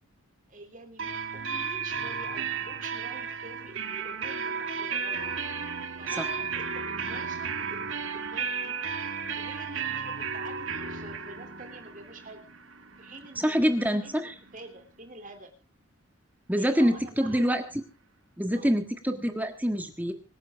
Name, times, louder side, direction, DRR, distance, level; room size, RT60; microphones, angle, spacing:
voice 1, 0.5-5.2 6.0-8.8 9.3-12.4 13.0-13.6 14.0-15.5 16.6-17.5 18.6-18.8, right 2 dB, 35° right, 6 dB, 3.0 m, -47 dB
sound 1, 1.0-14.6, right 5 dB, 65° right, 1.8 m, -34 dB
voice 2, 13.4-14.4 16.5-17.6 18.4-20.1, equal, 10° right, 6 dB, 1.6 m, -26 dB
25.5 x 11.0 x 3.6 m, 0.35 s
head